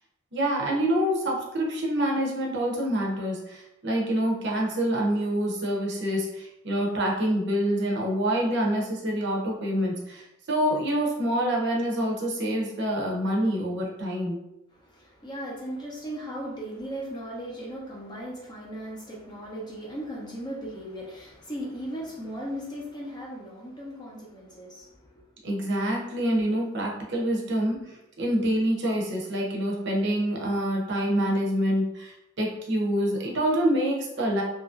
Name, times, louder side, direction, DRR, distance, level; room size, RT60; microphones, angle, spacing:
voice 1, 0.3-14.4 25.4-34.4, equal, 55° right, -2 dB, 0.6 m, -26 dB
voice 2, 14.7-25.2, equal, 20° left, -4 dB, 0.5 m, -37 dB
2.8 x 2.5 x 2.4 m, 0.88 s
head